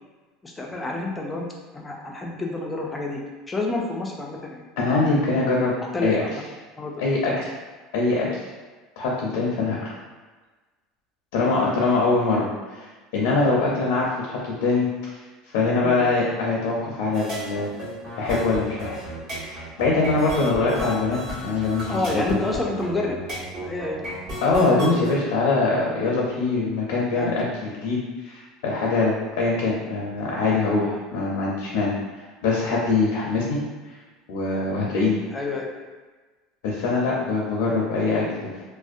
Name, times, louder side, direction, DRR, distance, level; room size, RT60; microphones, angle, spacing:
voice 1, 0.4-1.5 1.7-3.2 3.5-5.0 5.9-6.3 6.8-6.9 7.2-7.4 15.8-16.1 21.9-23.2 23.6-24.1 27.1-27.3 34.7-34.9 35.3-35.7, left 2 dB, 15° left, -1 dB, 0.4 m, -29 dB
voice 2, 4.8-5.7 6.0-6.2 7.0-7.5 7.9-8.4 9.0-9.9 11.3-12.9 13.1-14.9 15.5-17.8 18.2-19.0 19.4-22.0 22.3-22.4 24.4-28.0 28.2-32.0 32.4-33.6 34.3-35.2 36.6-38.6, left 3 dB, 80° left, -4 dB, 0.5 m, -23 dB
sound 1, 17.1-25.1, equal, 40° right, 1.3 m, -34 dB
2.6 x 2.0 x 2.4 m, 1.3 s
supercardioid pair, 120°, 0 cm